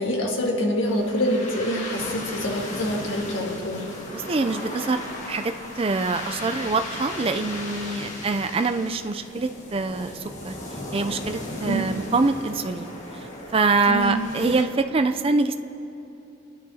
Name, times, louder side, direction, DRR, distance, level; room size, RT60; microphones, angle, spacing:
voice 1, 0.0-3.9 11.6-11.8 13.9-14.2, equal, 80° left, -1 dB, 1.7 m, -26 dB
sound 1, 0.8-14.6, left 1 dB, 40° left, 1.6 m, -36 dB
voice 2, 4.1-10.6 10.9-15.6, right 3 dB, 30° right, 8 dB, 0.4 m, -25 dB
23.0 x 11.0 x 2.8 m, 2.9 s
head